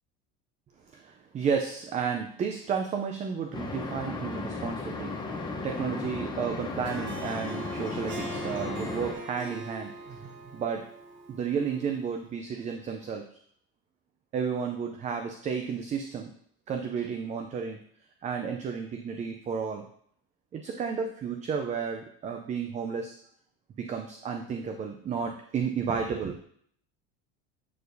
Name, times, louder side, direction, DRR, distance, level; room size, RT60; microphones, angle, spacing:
voice 1, 0.9-10.9 11.3-13.3 14.3-16.3 16.7-17.8 18.2-19.9 20.5-23.2 23.8-26.4, right 6 dB, 25° right, 5 dB, 0.4 m, -32 dB
sound 1, 3.5-9.1, left 3 dB, 15° left, 0.9 m, -35 dB
Harp, 6.7-12.1, right 2 dB, 40° right, 0.9 m, -42 dB
8.4 x 4.5 x 2.6 m, 0.63 s
supercardioid pair, 130°, 29 cm